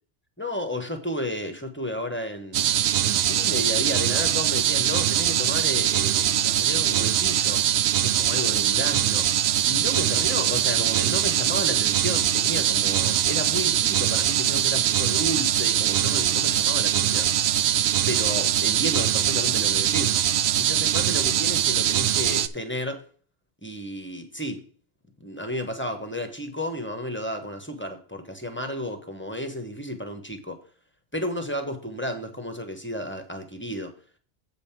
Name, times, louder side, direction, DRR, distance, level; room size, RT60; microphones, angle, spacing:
voice 1, 0.4-2.7 3.0-7.6 8.0-9.3 9.6-17.3 18.1-20.1 20.6-23.0 23.6-24.6 25.2-30.6 31.1-33.9, equal, 10° left, 6 dB, 1.2 m, -32 dB
sound 1, 2.5-22.5, right 10 dB, 70° right, 0.8 m, -22 dB
8.1 x 5.3 x 5.9 m, 0.43 s
omnidirectional pair, 1.2 m